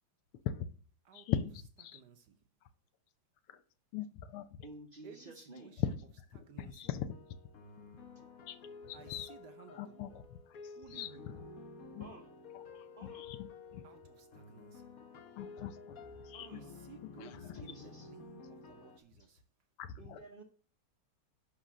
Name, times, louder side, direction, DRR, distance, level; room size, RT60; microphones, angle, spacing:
voice 1, 1.1-1.5 1.8-2.0 3.5-3.6 3.9-4.5 5.8-6.0 6.6-7.1 8.5-8.6 8.8-9.3 9.8-10.4 10.9-11.1 11.9-12.0 12.5-13.8 15.4-16.0 16.2-16.6 17.2-17.3 19.8-20.2, left 10 dB, 90° left, 1.7 m, -39 dB
voice 2, 1.8-2.4 5.0-5.9 6.3-7.0 8.9-10.2 10.7-11.4 13.8-14.9 16.4-19.4, right 8 dB, 60° right, 1.2 m, -57 dB
voice 3, 4.6-5.7 9.0-9.2 12.0-12.3 13.0-13.3 16.3-16.7 17.5-18.1 20.0-20.4, right 2 dB, 35° right, 0.9 m, -52 dB
sound 1, 6.8-19.0, left 4 dB, 50° left, 1.2 m, -52 dB
10.5 x 4.0 x 6.2 m
omnidirectional pair, 2.3 m